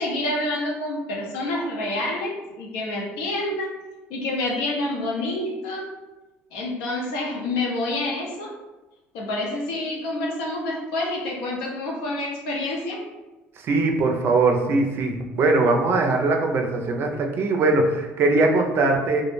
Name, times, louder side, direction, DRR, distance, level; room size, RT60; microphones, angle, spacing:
voice 1, 0.0-3.7 4.1-5.8 6.5-8.5 9.1-13.0, left 2 dB, 90° left, -2 dB, 0.6 m, -28 dB
voice 2, 13.6-19.2, right 3 dB, 50° right, 3 dB, 0.4 m, -21 dB
2.1 x 2.0 x 3.1 m, 1.1 s
supercardioid pair, 90°, 5 cm